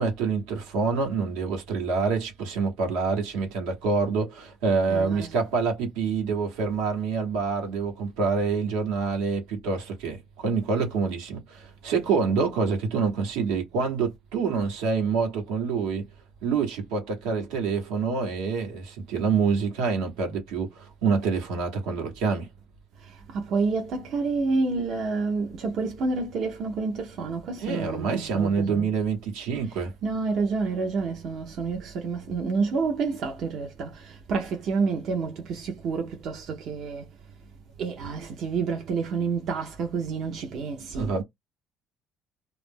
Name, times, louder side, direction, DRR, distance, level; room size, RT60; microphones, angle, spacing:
voice 1, 0.0-16.0 16.4-22.5 27.6-29.9 40.9-41.2, right 5 dB, 85° right, 1.1 m, -26 dB
voice 2, 4.9-5.3 23.0-28.9 29.6-37.1 37.8-41.2, right 4 dB, 65° right, 0.7 m, -29 dB
2.4 x 2.0 x 3.5 m
supercardioid pair, 75°, 0 cm